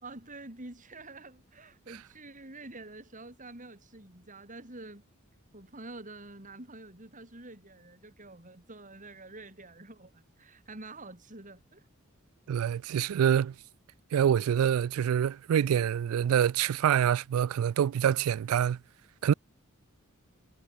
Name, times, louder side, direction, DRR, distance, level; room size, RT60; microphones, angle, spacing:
voice 1, 0.0-5.0 5.5-11.8, right 2 dB, 40° right, 4.6 m, -47 dB
voice 2, 12.5-13.5 14.1-18.8 19.2-19.3, right 9 dB, 75° right, 0.3 m, -26 dB
head